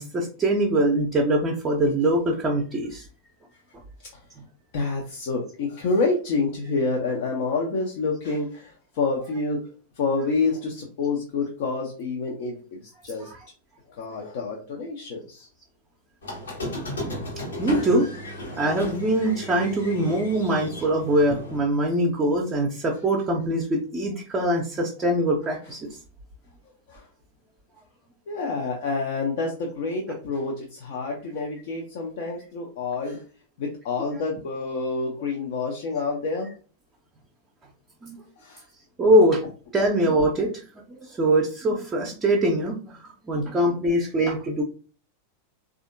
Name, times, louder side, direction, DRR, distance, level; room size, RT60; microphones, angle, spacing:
voice 1, 0.0-3.0 13.2-13.5 17.6-18.1 18.6-25.9 34.1-34.2 38.0-38.2 39.0-39.4 39.7-40.6 40.9-43.0 43.2-44.6, right 1 dB, 20° right, 0 dB, 0.6 m, -23 dB
voice 2, 4.7-9.6 10.0-13.3 14.0-15.5 17.7-17.9 26.9-27.1 28.3-33.2 33.6-36.5 38.4-38.6, left 3 dB, 50° left, 0 dB, 0.6 m, -28 dB
Squeak, 16.2-21.6, left 1 dB, 70° left, 1.1 m, -35 dB
3.4 x 2.4 x 2.5 m, 0.38 s
figure-of-eight pair, 90°, 0 cm